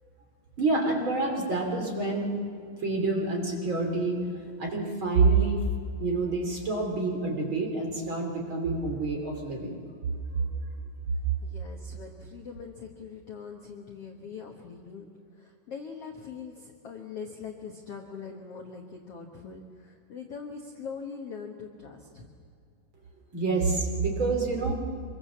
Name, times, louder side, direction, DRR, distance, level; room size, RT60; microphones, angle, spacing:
voice 1, 0.6-2.4 2.8-4.3 4.6-5.6 6.0-9.8 10.3-10.4 23.3-24.7, right 3 dB, 35° right, 1 dB, 3.4 m, -27 dB
voice 2, 11.4-15.1 15.3-22.3, left 5 dB, 55° left, 2 dB, 1.7 m, -42 dB
26.0 x 23.5 x 7.3 m, 2.4 s
omnidirectional pair, 4.6 m